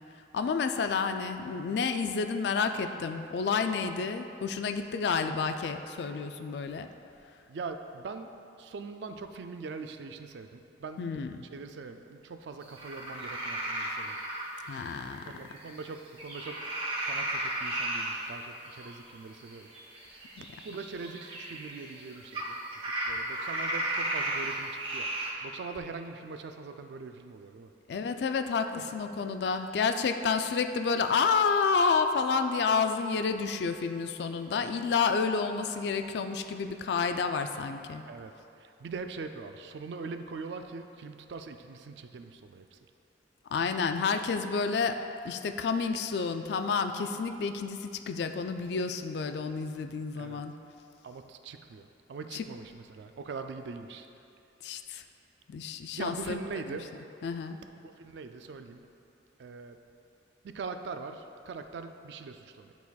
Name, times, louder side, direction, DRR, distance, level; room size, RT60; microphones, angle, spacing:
voice 1, 0.3-6.9 11.0-11.3 14.7-15.3 27.9-38.0 43.5-45.0 45.2-50.5 52.3-52.4 54.6-55.0 55.5-56.4 57.2-57.6, left 5 dB, 65° left, 8 dB, 0.3 m, -30 dB
voice 2, 7.5-11.0 11.5-14.2 15.2-16.7 17.0-19.7 20.0-22.6 23.1-25.1 25.4-27.7 28.8-28.9 38.1-38.3 38.6-42.8 50.2-50.4 51.0-54.1 55.9-56.9 57.8-58.9 59.4-59.8 60.4-62.7, right 4 dB, 75° right, 7 dB, 0.3 m, -42 dB
sound 1, 12.6-15.9 16.2-25.3, right 1 dB, 30° right, 0.9 m, -35 dB
10.5 x 4.1 x 2.3 m, 2.7 s
head